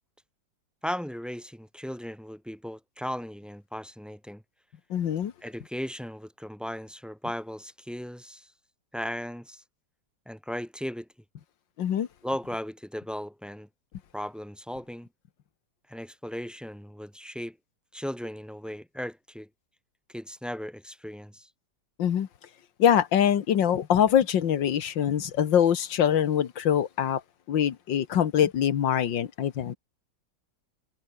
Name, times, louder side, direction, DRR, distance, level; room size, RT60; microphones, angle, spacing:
voice 1, 0.8-4.4 5.4-8.5 8.9-9.6 10.3-11.1 12.2-13.7 14.1-15.1 15.9-17.6 17.9-19.5 20.1-21.5, equal, ahead, 4.4 m, -36 dB
voice 2, 4.9-5.3 11.8-12.1 22.0-22.3 22.8-27.2 27.5-29.8, left 9 dB, 90° left, 2.0 m, -24 dB
omnidirectional pair, 2.0 m